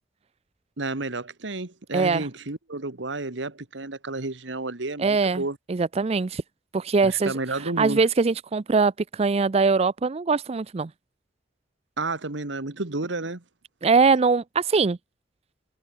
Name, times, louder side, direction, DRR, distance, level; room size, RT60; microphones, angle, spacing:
voice 1, 0.8-5.6 7.0-8.0 12.0-13.4, right 2 dB, 80° right, 1.7 m, -31 dB
voice 2, 1.9-2.3 5.0-5.4 5.7-6.4 6.7-7.3 7.6-10.9 13.8-15.0, right 4 dB, 35° right, 0.4 m, -22 dB
head